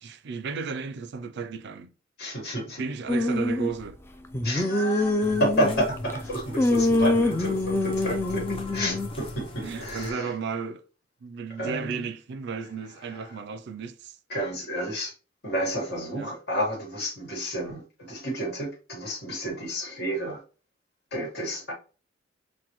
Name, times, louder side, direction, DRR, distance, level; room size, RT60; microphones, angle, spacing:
voice 1, 0.0-1.9 2.8-4.0 9.6-10.8 11.2-14.2 16.1-16.3, right 5 dB, 60° right, 0.4 m, -34 dB
voice 2, 2.2-2.8 4.4-8.4 8.7-10.3 11.6-11.9 14.3-15.1 15.4-20.4 21.1-21.7, equal, 55° left, 1.6 m, -30 dB
sound 1, 3.1-3.7 4.3-6.2 6.6-9.1, left 2 dB, 10° left, 0.4 m, -25 dB
sound 2, 5.2-10.1, left 1 dB, 30° left, 0.7 m, -39 dB
5.9 x 2.1 x 3.0 m
head